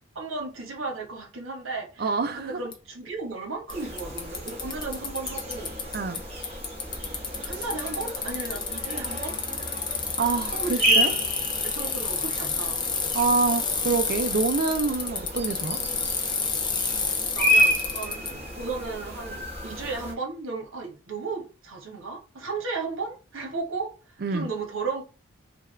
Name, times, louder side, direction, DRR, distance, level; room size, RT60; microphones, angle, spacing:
voice 1, 0.1-5.7 7.4-9.4 10.5-11.2 11.6-12.8 16.8-23.9 24.3-25.0, right 4 dB, 85° right, 1.1 m, -35 dB
voice 2, 2.0-2.6 5.9-6.2 10.2-11.1 13.1-15.8 24.2-24.5, right 4 dB, 50° right, 0.4 m, -26 dB
Bicycle, 2.7-2.8 3.7-3.8 4.0-6.2 6.4-18.3, left 5 dB, 25° left, 0.5 m, -30 dB
sound 1, 3.7-20.1, equal, 30° right, 1.2 m, -30 dB
3.4 x 2.3 x 3.3 m
head